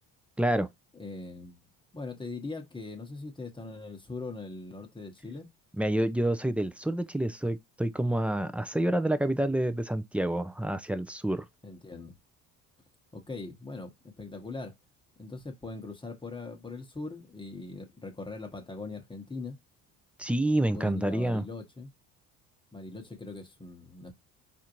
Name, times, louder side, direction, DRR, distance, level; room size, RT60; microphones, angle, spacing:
voice 1, 0.4-0.7 5.8-11.4 20.2-21.5, right 1 dB, 5° right, 0.4 m, -28 dB
voice 2, 0.9-5.5 11.6-12.2 13.1-14.7 15.2-19.6 20.7-21.9 22.7-24.1, left 3 dB, 15° left, 1.0 m, -41 dB
4.2 x 2.6 x 2.9 m
supercardioid pair, 80°, 35 cm